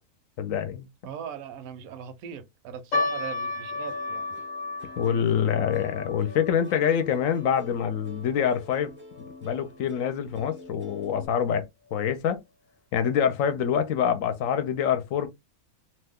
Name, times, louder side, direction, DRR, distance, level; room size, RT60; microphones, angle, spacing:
voice 1, 0.4-0.9 5.0-8.9 9.4-11.6 11.9-12.4 12.9-15.3, left 8 dB, 70° left, 0.9 m, -25 dB
voice 2, 1.0-4.2, right 8 dB, 75° right, 1.1 m, -39 dB
sound 1, 2.9-9.4 9.7-9.8 10.5-10.8 11.4-11.5 11.9-12.0, left 3 dB, 40° left, 0.7 m, -34 dB
Plucked string instrument, 3.9-11.3, left 1 dB, 20° right, 0.3 m, -48 dB
2.8 x 2.1 x 3.5 m
omnidirectional pair, 1.6 m